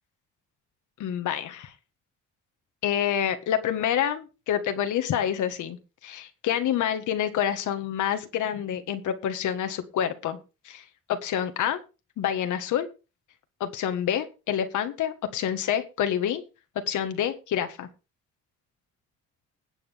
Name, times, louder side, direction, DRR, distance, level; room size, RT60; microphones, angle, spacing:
voice 1, 1.0-1.7 2.8-5.8 6.0-10.4 10.6-11.8 12.2-12.9 13.6-16.4 16.9-17.9, left 9 dB, 75° left, 7 dB, 1.6 m, -27 dB
20.5 x 7.8 x 3.5 m, 0.30 s
cardioid pair, 90°, 30 cm